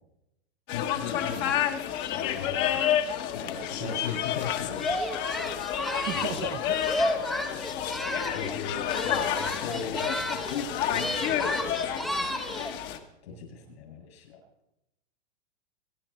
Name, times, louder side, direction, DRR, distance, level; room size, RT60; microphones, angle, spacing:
voice 1, 0.7-1.6 2.1-2.9 3.3-4.8 5.1-6.5 7.9-12.3 13.2-14.4, left 6 dB, 75° left, 2 dB, 7.0 m, -39 dB
sound 1, 0.7-13.0, left 10 dB, 35° left, 1.2 m, -30 dB
Singing, 4.7-8.6 8.8-10.6 10.9-12.8, equal, ahead, 0.8 m, -32 dB
voice 2, 6.1-6.9 9.7-10.5 13.3-13.8, right 13 dB, 40° right, 15 dB, 0.8 m, -39 dB
25.5 x 10.0 x 4.3 m, 0.88 s
supercardioid pair, 150°, 32 cm